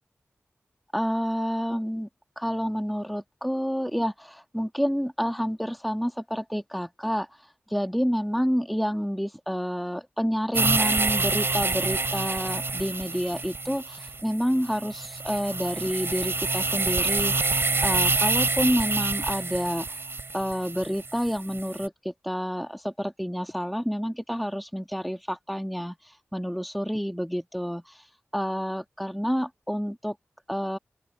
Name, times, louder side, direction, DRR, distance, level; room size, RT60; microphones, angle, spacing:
voice 1, 0.9-2.1 2.3-7.3 7.7-19.9 20.3-28.0 28.3-30.1 30.5-30.8, equal, ahead, 1.8 m, -29 dB
sound 1, 10.5-21.9, right 3 dB, 55° right, 4.7 m, -27 dB
open air
cardioid pair, 45°, 5 cm